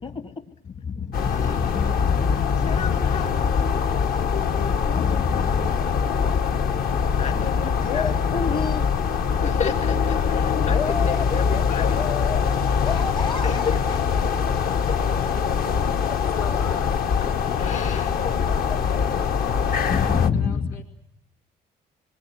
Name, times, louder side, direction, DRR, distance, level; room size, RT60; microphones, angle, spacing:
voice 1, 0.0-0.5 7.2-9.2 10.5-12.6 12.8-14.7 18.7-18.8, left 5 dB, 30° left, 9 dB, 0.9 m, -32 dB
sound 1, 1.1-20.3, left 6 dB, 60° left, 1.2 m, -23 dB
voice 2, 1.2-3.4 4.2-6.0 7.2-8.2 9.4-10.2 10.7-12.1 13.4-13.5 16.7-16.8 17.6-18.1 19.9-20.7, left 6 dB, 45° left, 4 dB, 2.4 m, -29 dB
voice 3, 16.2-17.0 17.2-18.4 18.8-20.8, left 8 dB, 75° left, 3 dB, 5.0 m, -41 dB
26.5 x 20.5 x 9.6 m, 0.75 s
cardioid pair, 110°, 17 cm